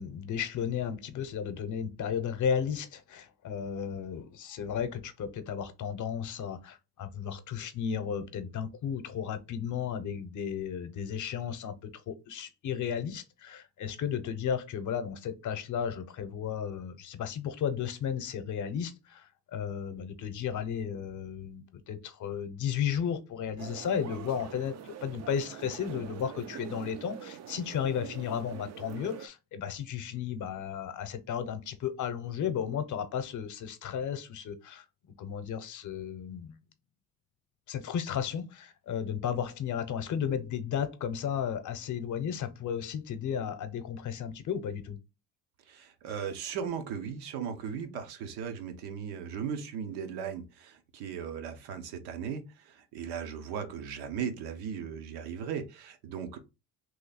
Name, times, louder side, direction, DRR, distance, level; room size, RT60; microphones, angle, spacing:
voice 1, 0.0-34.8 35.2-36.6 37.7-45.0, left 8 dB, 50° left, 0.8 m, -34 dB
sound 1, 23.6-29.3, right 10 dB, 45° right, 0.5 m, -44 dB
voice 2, 45.7-56.4, right 7 dB, 75° right, 1.0 m, -37 dB
3.1 x 2.7 x 4.0 m
supercardioid pair, 85°, 39 cm